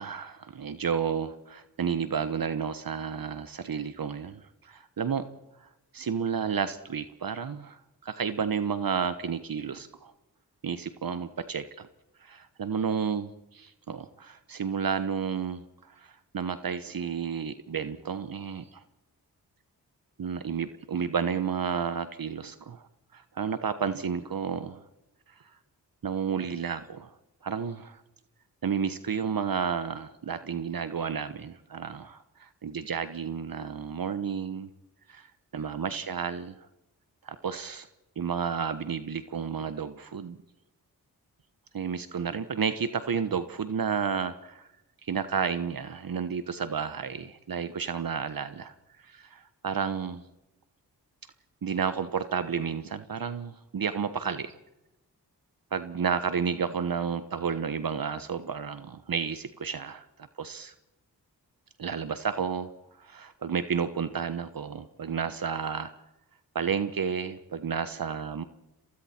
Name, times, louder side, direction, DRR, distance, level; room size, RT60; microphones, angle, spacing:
voice 1, 0.0-5.2 5.6-5.7 5.9-10.1 10.6-11.9 12.2-18.8 20.2-22.9 23.1-24.8 26.0-27.1 27.4-28.0 28.6-34.7 35.1-36.6 37.2-37.9 38.2-40.4 41.7-44.7 45.0-50.2 51.6-54.5 55.7-60.7 61.8-62.7 63.0-65.9 66.5-68.4, right 6 dB, 60° right, 11 dB, 1.2 m, -31 dB
30.0 x 23.5 x 4.5 m, 0.97 s
cardioid pair, 45°, 39 cm